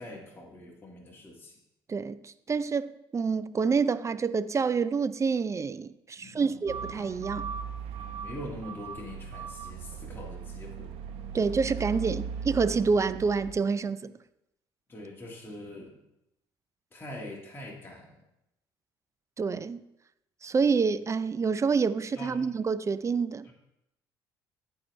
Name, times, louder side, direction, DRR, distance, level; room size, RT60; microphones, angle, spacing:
voice 1, 0.0-1.6 6.2-6.6 8.0-11.0 14.9-16.0 16.9-18.3 22.1-22.4 23.4-23.5, left 1 dB, 20° left, 1.7 m, -43 dB
voice 2, 1.9-7.5 11.3-14.1 19.4-19.8 20.4-23.5, right 5 dB, 30° right, 0.4 m, -27 dB
sound 1, 6.7-13.5, right 7 dB, 75° right, 0.7 m, -38 dB
13.5 x 4.8 x 3.1 m
supercardioid pair, 65°, 10 cm